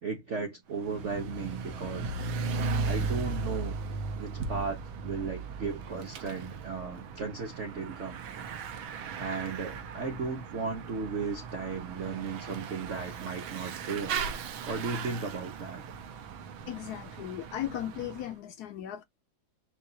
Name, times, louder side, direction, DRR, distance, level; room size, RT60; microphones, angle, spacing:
voice 1, 0.0-2.1 2.8-3.8 4.2-8.2 9.2-14.3 14.6-15.8, right 4 dB, 55° right, 0.8 m, -35 dB
Bicycle / Mechanisms, 0.7-18.3, right 4 dB, 80° right, 1.6 m, -37 dB
voice 2, 16.7-19.0, left 12 dB, 75° left, 0.9 m, -37 dB
4.6 x 2.3 x 3.9 m
omnidirectional pair, 2.2 m